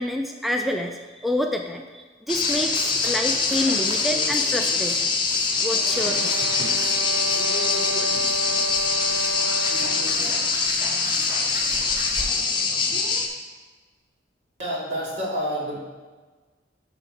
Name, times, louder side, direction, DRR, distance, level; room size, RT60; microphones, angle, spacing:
voice 1, 0.0-5.1 5.6-6.3, left 1 dB, ahead, 4 dB, 0.3 m, -28 dB
sound 1, 2.3-13.3, left 4 dB, 25° left, 0.8 m, -24 dB
sound 2, 2.3-12.2, equal, 20° right, 1.7 m, -38 dB
sound 3, 5.5-10.3, right 1 dB, 90° right, 0.3 m, -31 dB
voice 2, 14.6-15.8, equal, 70° right, -6 dB, 2.6 m, -28 dB
5.8 x 5.8 x 5.9 m, 1.4 s
head